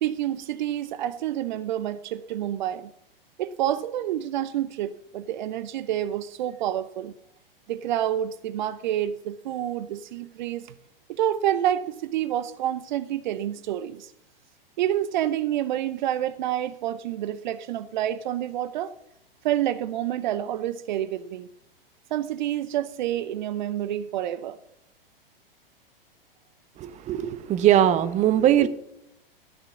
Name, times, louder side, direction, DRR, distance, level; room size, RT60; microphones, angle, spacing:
voice 1, 0.0-2.9 3.4-7.1 7.7-10.7 11.1-14.1 14.8-18.9 19.4-21.5 22.1-24.6, right 11 dB, 50° right, 0.7 m, -28 dB
voice 2, 26.8-28.7, right 11 dB, 25° right, 0.9 m, -20 dB
14.0 x 6.9 x 7.1 m
figure-of-eight pair, 100°, 29 cm